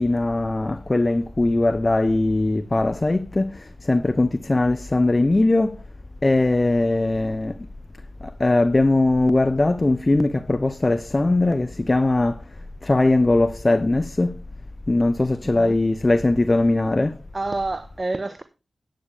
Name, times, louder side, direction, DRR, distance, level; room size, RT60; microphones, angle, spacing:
voice 1, 0.0-5.8 6.2-7.5 8.4-12.4 12.8-14.4 14.9-17.1, left 2 dB, 35° left, 0.7 m, -20 dB
voice 2, 15.4-15.8 17.3-18.4, right 2 dB, 40° right, 1.1 m, -28 dB
11.5 x 9.8 x 3.4 m
cardioid pair, 45°, 0 cm